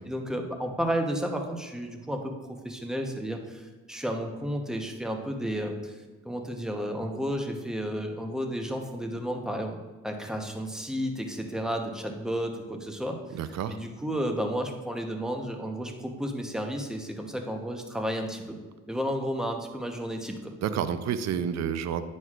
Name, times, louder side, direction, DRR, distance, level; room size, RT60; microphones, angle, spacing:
voice 1, 0.1-9.8 10.0-13.4 13.7-18.6 18.9-20.5, equal, ahead, 3 dB, 0.9 m, -32 dB
voice 2, 13.3-13.8 20.6-22.0, right 8 dB, 60° right, 11 dB, 0.6 m, -29 dB
9.1 x 6.4 x 2.5 m, 1.3 s
cardioid pair, 90°, 30 cm